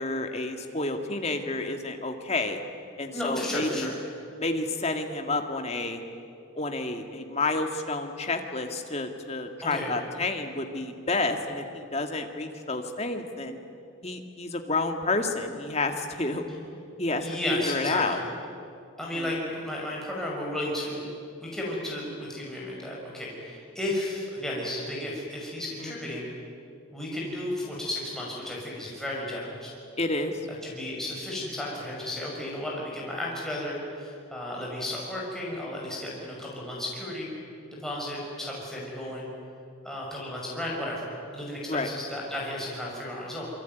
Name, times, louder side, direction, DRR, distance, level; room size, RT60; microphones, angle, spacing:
voice 1, 0.0-2.6 3.0-3.9 4.4-6.0 6.5-13.6 14.0-16.5 17.0-17.3 17.6-18.2 19.0-19.3 25.8-25.9 30.0-30.3 41.7-41.9, left 2 dB, 30° left, 5 dB, 2.2 m, -30 dB
voice 2, 3.1-3.9 9.6-9.9 17.2-18.2 19.0-21.0 21.4-26.3 26.9-29.7 30.6-37.3 37.8-39.3 39.8-41.0 41.3-43.4, left 1 dB, ahead, -4 dB, 6.1 m, -33 dB
27.0 x 24.0 x 9.4 m, 2.5 s
head